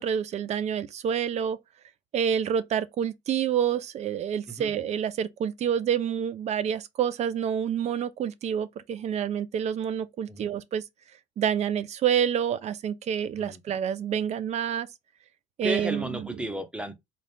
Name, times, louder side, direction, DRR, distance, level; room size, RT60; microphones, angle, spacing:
voice 1, 0.0-1.6 2.1-10.8 11.4-14.9 15.6-16.2, right 8 dB, 40° right, 0.5 m, -28 dB
voice 2, 15.6-16.9, equal, 5° right, 0.8 m, -34 dB
4.1 x 2.5 x 3.4 m
cardioid pair, 120°, 17 cm